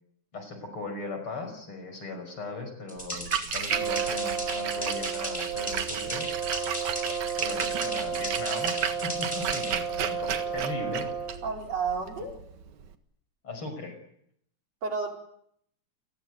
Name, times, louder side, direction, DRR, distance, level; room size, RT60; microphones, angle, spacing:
voice 1, 0.3-6.3 7.4-11.1 13.4-14.0, left 3 dB, 45° left, 7 dB, 6.5 m, -38 dB
sound 1, 2.9-9.7, equal, 5° left, 5.1 m, -37 dB
Splash splatter, 3.0-12.9, right 8 dB, 80° right, 3.1 m, -34 dB
Brass instrument, 3.7-11.5, right 6 dB, 30° right, 2.4 m, -33 dB
voice 2, 7.8-8.2 11.4-12.4 14.8-15.1, right 5 dB, 60° right, 2 dB, 5.9 m, -32 dB
29.0 x 21.0 x 9.6 m, 0.72 s
omnidirectional pair, 3.3 m